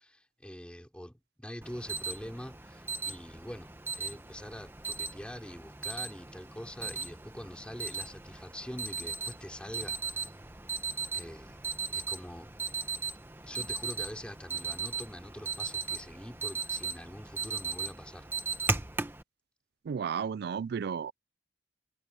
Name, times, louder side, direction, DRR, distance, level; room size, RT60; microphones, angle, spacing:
voice 1, 0.0-3.7 3.9-10.3 11.1-11.6 11.9-12.5 13.4-18.6, equal, 5° left, 3.4 m, -44 dB
Alarm, 1.6-19.2, right 5 dB, 15° right, 1.2 m, -37 dB
voice 2, 19.9-21.1, right 6 dB, 60° right, 0.3 m, -33 dB
head